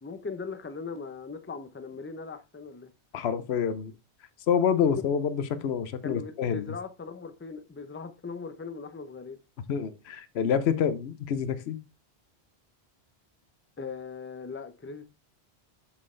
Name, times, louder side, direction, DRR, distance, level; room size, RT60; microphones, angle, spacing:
voice 1, 0.0-2.9 4.8-4.9 6.0-9.4 13.8-15.1, left 4 dB, 15° left, 0.6 m, -39 dB
voice 2, 3.1-3.9 4.5-6.7 9.7-11.8, left 7 dB, 75° left, 1.0 m, -27 dB
7.5 x 6.2 x 3.2 m
omnidirectional pair, 1.1 m